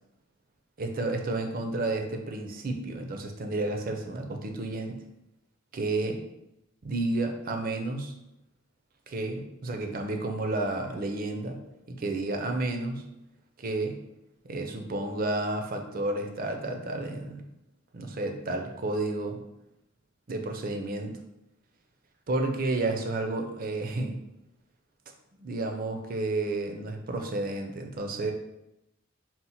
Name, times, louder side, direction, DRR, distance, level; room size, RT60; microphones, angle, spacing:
voice 1, 0.8-5.0 5.7-6.2 6.8-8.1 9.1-11.6 11.9-13.0 13.6-14.0 14.4-17.4 17.9-19.4 20.3-21.1 22.3-24.2 25.4-28.3, right 2 dB, 45° right, 4 dB, 0.5 m, -31 dB
4.2 x 2.1 x 4.1 m, 0.88 s
head